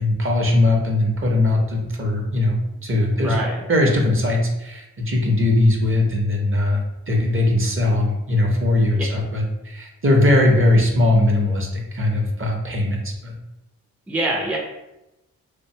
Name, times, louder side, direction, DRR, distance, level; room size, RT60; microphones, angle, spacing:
voice 1, 0.0-3.4 3.7-6.8 7.1-13.4, left 1 dB, 35° right, 0 dB, 0.7 m, -20 dB
voice 2, 3.1-3.6 8.9-9.1 14.1-14.6, right 1 dB, 5° right, -2 dB, 0.4 m, -25 dB
2.5 x 2.2 x 2.7 m, 0.94 s
cardioid pair, 50°, 37 cm